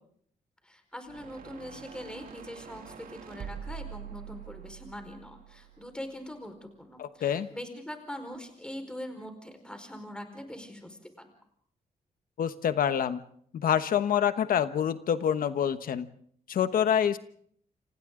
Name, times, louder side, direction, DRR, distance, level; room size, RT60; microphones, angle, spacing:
voice 1, 0.6-11.3, left 1 dB, 5° left, 6 dB, 4.8 m, -42 dB
sound 1, 1.1-6.3, right 7 dB, 80° right, 2.7 m, -45 dB
voice 2, 7.0-7.5 12.4-13.2 13.5-16.1 16.5-17.2, left 9 dB, 75° left, 11 dB, 1.2 m, -26 dB
29.5 x 27.0 x 3.8 m, 0.62 s
wide cardioid pair, 135°, 15 cm